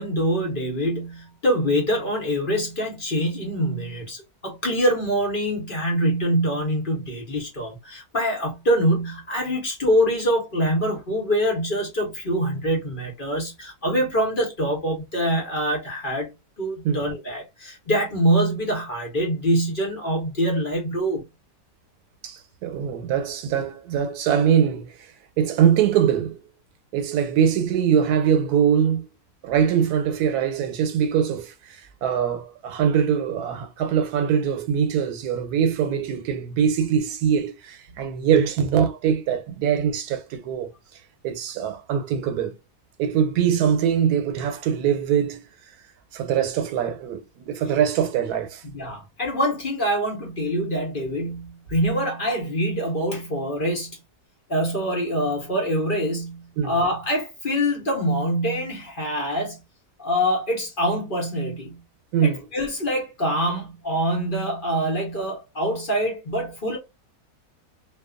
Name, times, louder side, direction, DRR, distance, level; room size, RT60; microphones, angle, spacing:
voice 1, 0.0-16.3 16.6-21.2 48.6-54.0 54.5-59.6 60.0-61.8 62.2-66.8, equal, 40° left, 0.9 m, -24 dB
voice 2, 22.2-25.1 25.4-26.4 26.9-29.1 29.4-40.7 41.2-42.5 43.0-45.4 46.1-48.6 56.6-56.8 62.1-62.4, right 8 dB, 90° right, 1.1 m, -22 dB
2.6 x 2.3 x 2.3 m
omnidirectional pair, 1.6 m